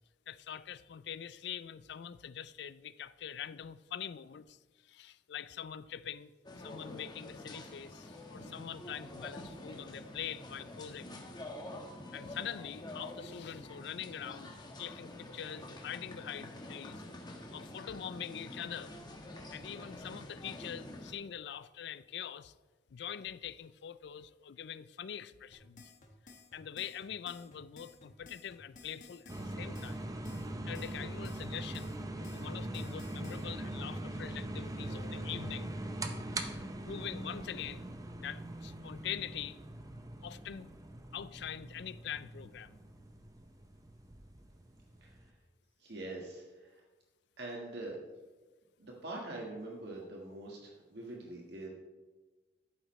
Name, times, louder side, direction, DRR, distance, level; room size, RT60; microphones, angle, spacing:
voice 1, 0.3-6.3 6.6-11.2 12.1-17.0 17.5-18.9 19.5-22.5 22.9-25.9 26.5-30.1 30.6-35.7 36.8-37.9 38.2-39.6 40.2-40.7 41.1-42.8, left 9 dB, 70° left, 16 dB, 0.4 m, -44 dB
sound 1, 6.4-21.1, left 1 dB, 25° left, 1.3 m, -47 dB
sound 2, 25.5-33.5, left 4 dB, 45° left, 1.5 m, -56 dB
sound 3, 29.3-45.3, right 1 dB, 20° right, 0.7 m, -42 dB
voice 2, 45.0-45.3 45.8-46.8 47.4-48.0 48.8-51.7, right 2 dB, 65° right, -1 dB, 1.5 m, -44 dB
11.5 x 9.0 x 3.1 m, 1.2 s
head